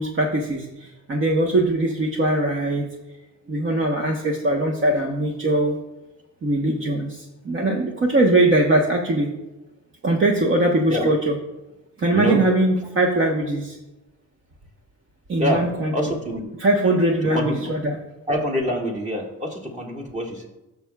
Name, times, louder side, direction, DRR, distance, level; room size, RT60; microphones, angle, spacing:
voice 1, 0.0-2.8 3.5-5.8 6.4-9.3 10.0-11.4 12.0-13.8 15.3-15.9 16.6-18.0, right 1 dB, 40° right, 1 dB, 1.1 m, -21 dB
voice 2, 15.9-16.5 17.3-17.6 18.3-20.5, equal, 25° right, 0 dB, 1.9 m, -25 dB
11.5 x 6.9 x 2.3 m, 0.99 s
cardioid pair, 90°, 30 cm